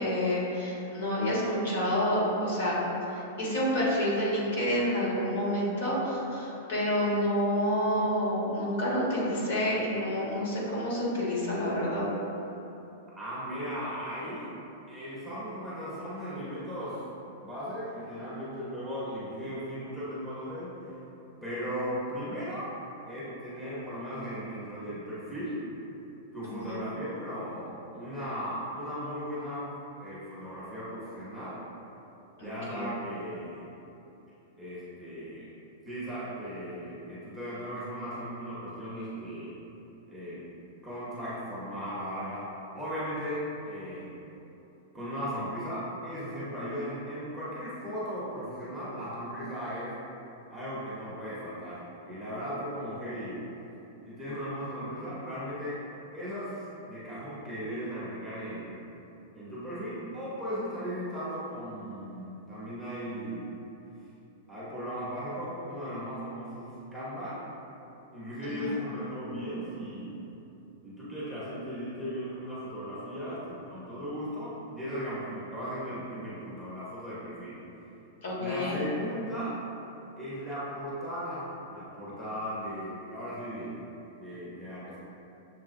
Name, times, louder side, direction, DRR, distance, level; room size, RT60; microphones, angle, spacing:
voice 1, 0.0-2.8 3.1-12.0 26.6-26.8 32.4-32.8 68.4-68.7 78.2-78.8, equal, 60° left, -6 dB, 1.3 m, -29 dB
voice 2, 13.1-14.5 14.9-17.0 17.4-21.0 21.4-22.7 23.1-25.7 26.3-31.6 32.4-33.6 34.6-35.5 35.8-39.5 40.1-40.4 40.8-42.4 42.7-44.1 44.9-50.0 50.5-53.4 54.0-55.8 56.1-58.7 59.3-63.5 64.5-67.4 68.1-70.1 70.8-77.6 78.3-79.6 80.2-83.8 84.2-85.0, equal, ahead, -12 dB, 0.7 m, -37 dB
6.6 x 2.7 x 2.5 m, 2.9 s
supercardioid pair, 170°, 0 cm